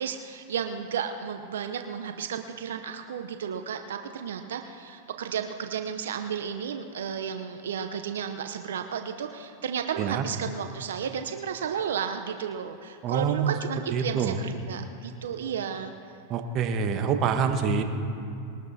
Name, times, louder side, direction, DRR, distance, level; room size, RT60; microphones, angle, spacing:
voice 1, 0.0-15.9, right 7 dB, 80° right, 7 dB, 0.7 m, -33 dB
voice 2, 13.0-13.5 13.9-14.4 16.3-17.8, right 6 dB, 40° right, 6 dB, 1.3 m, -26 dB
21.0 x 12.5 x 4.2 m, 2.6 s
hypercardioid pair, 115°, 0 cm